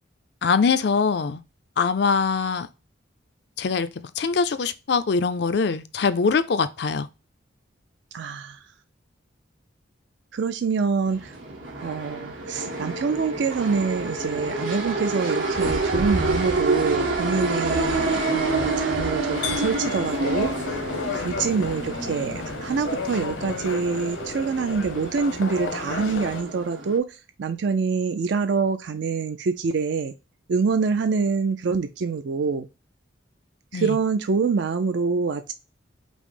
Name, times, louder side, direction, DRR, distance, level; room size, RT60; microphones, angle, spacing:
voice 1, 0.4-1.4 1.8-2.7 3.6-3.9 4.2-7.1 33.7-34.0, left 5 dB, 60° left, 0.4 m, -23 dB
voice 2, 8.1-8.6 10.3-11.3 11.8-20.5 21.1-27.1 27.4-30.1 30.5-32.7 33.7-35.5, right 5 dB, 65° right, 0.4 m, -25 dB
sound 1, 11.0-27.0, right 2 dB, 90° right, 1.6 m, -28 dB
sound 2, 19.3-26.4, left 3 dB, 75° left, 0.9 m, -32 dB
5.3 x 2.0 x 4.8 m
head